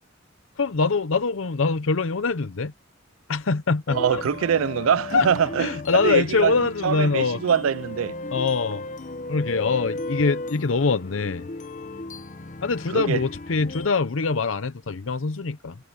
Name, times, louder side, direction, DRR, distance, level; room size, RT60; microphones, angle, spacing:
voice 1, 0.6-2.7 3.3-4.2 5.1-5.3 5.6-7.4 8.3-8.8 9.3-11.5 12.6-15.8, left 4 dB, 70° left, 0.7 m, -24 dB
sound 1, 3.9-13.9, left 2 dB, 40° left, 1.0 m, -35 dB
voice 2, 3.9-6.5 6.8-8.2 12.9-13.2, right 7 dB, 90° right, 0.4 m, -23 dB
head